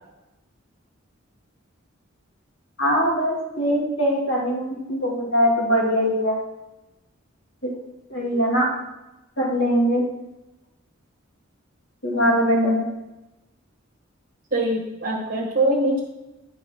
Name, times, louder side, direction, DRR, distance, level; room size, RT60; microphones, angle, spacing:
voice 1, 2.8-6.4 7.6-7.7 8.1-8.7 9.4-10.0 12.0-12.8, equal, 60° left, -2 dB, 2.5 m, -22 dB
voice 2, 12.2-12.8 14.5-16.0, right 1 dB, 45° right, -2 dB, 1.3 m, -23 dB
10.0 x 4.2 x 5.7 m, 0.98 s
head